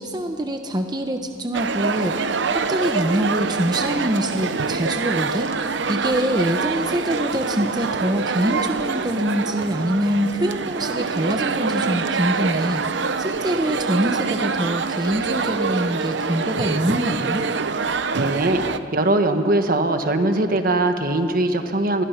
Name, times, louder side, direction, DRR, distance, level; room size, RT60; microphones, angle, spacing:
voice 1, 0.0-17.4, right 1 dB, 20° right, 5 dB, 1.0 m, -24 dB
sound 1, 1.5-18.8, right 4 dB, 70° right, 0.8 m, -25 dB
voice 2, 18.2-18.6 18.9-22.0, right 2 dB, 50° right, 7 dB, 1.4 m, -20 dB
27.5 x 22.0 x 5.8 m, 2.7 s
head